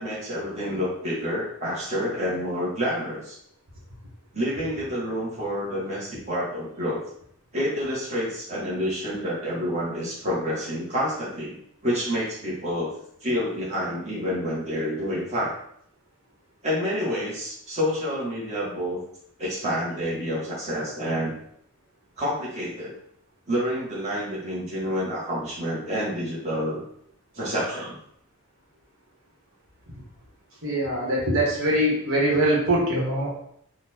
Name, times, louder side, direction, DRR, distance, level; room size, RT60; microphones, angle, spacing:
voice 1, 0.0-3.4 4.3-7.0 7.5-11.6 11.8-12.9 13.2-15.5 16.6-19.0 19.4-21.4 22.2-22.9 23.5-26.8 27.4-28.0, equal, 30° right, -6 dB, 1.7 m, -28 dB
voice 2, 30.6-33.3, right 1 dB, 65° right, -4 dB, 1.6 m, -23 dB
4.4 x 2.6 x 4.4 m, 0.69 s
head